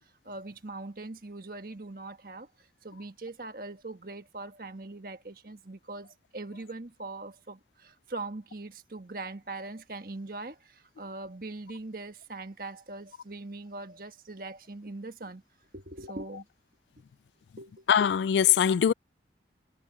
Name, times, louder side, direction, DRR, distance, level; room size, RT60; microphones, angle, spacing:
voice 1, 0.2-15.4 15.7-16.4 17.6-17.9, right 2 dB, 55° right, 1.5 m, -41 dB
voice 2, 17.9-18.9, left 9 dB, 75° left, 0.3 m, -22 dB
head